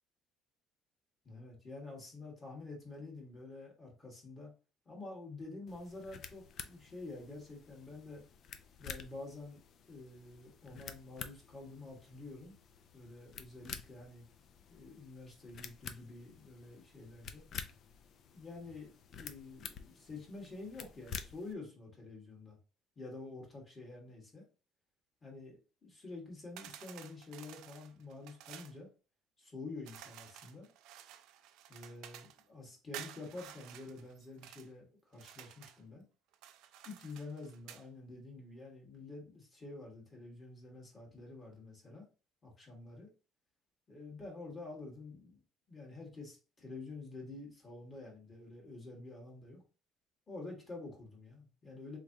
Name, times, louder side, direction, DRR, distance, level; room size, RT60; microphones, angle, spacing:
voice 1, 1.3-4.5 4.8-8.2 8.8-9.6 9.9-12.6 12.9-14.2 14.7-17.4 18.3-22.6 23.0-24.4 25.2-28.9 29.4-30.7 31.7-36.0 36.8-42.0 42.4-43.1 43.9-45.4 45.7-49.6 50.3-52.0, left 3 dB, 25° left, -1 dB, 1.5 m, -48 dB
sound 1, 5.7-21.5, left 7 dB, 50° left, 0.4 m, -50 dB
sound 2, 26.6-28.8 29.8-32.4 32.9-34.7 35.1-35.8 36.3-37.9, right 11 dB, 85° right, 0.4 m, -52 dB
3.6 x 3.1 x 2.7 m, 0.34 s
cardioid pair, 140°, 0 cm